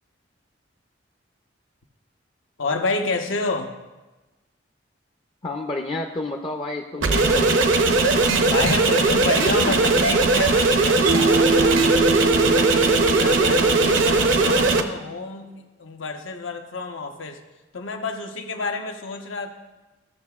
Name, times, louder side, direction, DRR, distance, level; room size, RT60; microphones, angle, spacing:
voice 1, 2.6-3.7 8.5-11.8 12.2-15.5 15.8-17.4 17.7-19.5, left 3 dB, 85° left, 4 dB, 0.9 m, -29 dB
voice 2, 5.4-7.6, left 2 dB, 30° left, 3 dB, 0.4 m, -30 dB
sound 1, 7.0-14.8, right 3 dB, 80° right, 0.7 m, -19 dB
Mallet percussion, 11.1-14.3, right 4 dB, 45° right, 0.4 m, -24 dB
14.5 x 6.7 x 2.4 m, 1.1 s
head